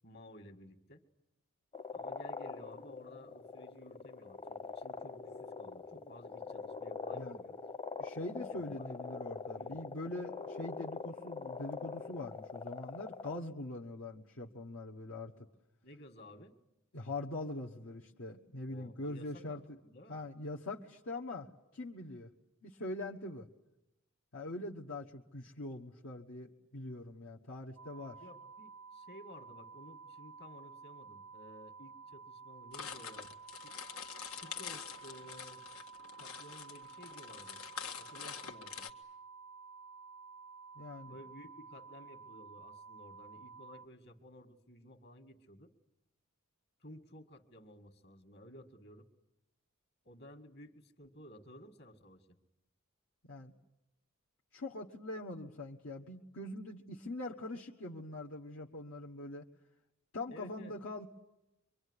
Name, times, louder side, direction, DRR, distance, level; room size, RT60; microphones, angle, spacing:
voice 1, 0.0-1.0 1.9-7.6 8.5-8.9 9.6-9.8 15.8-16.5 18.7-20.2 28.2-33.3 33.6-33.7 34.4-35.6 36.2-37.6 38.0-38.9 41.0-45.7 46.8-49.1 50.0-52.4 60.3-60.7, equal, 50° left, 6 dB, 2.1 m, -55 dB
sound 1, 1.7-13.4, left 5 dB, 25° left, 1.0 m, -43 dB
voice 2, 8.0-15.3 16.9-19.8 20.1-22.3 22.6-23.5 24.3-28.2 40.7-41.2 53.2-53.5 54.5-59.5 60.1-61.1, left 2 dB, 65° left, -2 dB, 1.4 m, -43 dB
sound 2, 27.8-43.9, right 5 dB, 90° right, 0.9 m, -52 dB
sound 3, 32.7-38.9, left 7 dB, 85° left, 1.7 m, -46 dB
25.0 x 24.0 x 9.8 m, 0.91 s
head